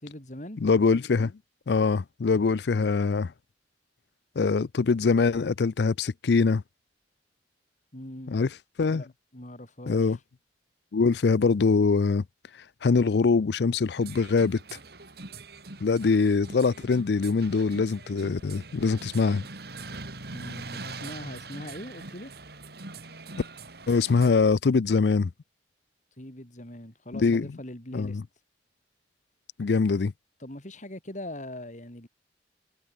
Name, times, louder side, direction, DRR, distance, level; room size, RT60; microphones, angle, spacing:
voice 1, 0.0-0.6 2.7-2.9 7.9-8.4 8.9-9.1 9.3-10.1 20.3-22.3 26.2-28.2 30.4-32.1, left 1 dB, 45° left, 5.0 m, -41 dB
voice 2, 0.6-1.3 1.7-3.3 4.4-6.6 8.3-8.5 8.8-9.0 9.9-10.2 10.9-12.2 12.8-14.6 15.8-19.4 23.9-25.3 27.2-27.5 27.9-28.2 29.6-30.1, left 4 dB, 70° left, 0.5 m, -23 dB
sound 1, 14.0-24.3, right 3 dB, 60° right, 4.0 m, -43 dB
head